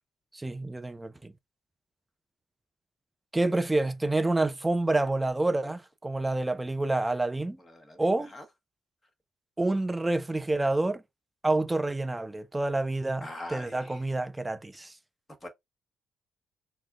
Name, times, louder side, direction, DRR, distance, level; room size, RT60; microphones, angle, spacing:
voice 1, 0.3-1.3 3.3-7.6 8.0-8.3 9.6-11.0 11.4-14.9, right 2 dB, 15° right, 0.5 m, -28 dB
voice 2, 7.6-8.4 13.2-14.0 15.4-15.5, left 1 dB, 25° left, 1.3 m, -43 dB
6.1 x 2.3 x 2.3 m
figure-of-eight pair, 40°, 0 cm